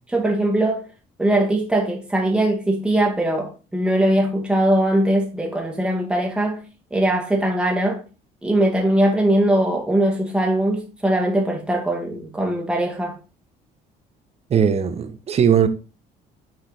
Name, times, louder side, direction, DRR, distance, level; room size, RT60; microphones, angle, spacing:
voice 1, 0.1-0.8 1.2-6.6 6.9-8.0 8.4-13.2, right 1 dB, 5° right, 1.6 m, -20 dB
voice 2, 14.5-15.7, right 8 dB, 40° right, 0.8 m, -18 dB
6.4 x 4.4 x 4.0 m
cardioid pair, 110°, 17 cm